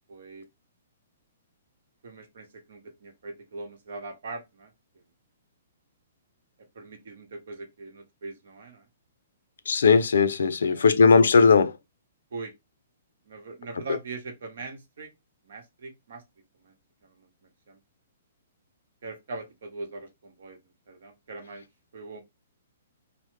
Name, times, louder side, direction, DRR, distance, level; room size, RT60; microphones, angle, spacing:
voice 1, 0.1-0.4 2.0-4.7 6.7-8.9 10.6-11.0 12.3-12.5 13.3-15.1 15.4-16.2 16.6-16.7 17.0-17.3 17.7-17.8 19.0-20.6 20.9-21.6 21.9-22.2, right 3 dB, 65° right, 1.0 m, -41 dB
voice 2, 9.7-11.7, left 5 dB, 90° left, 0.4 m, -18 dB
3.1 x 2.0 x 3.1 m
hypercardioid pair, 165°, 0 cm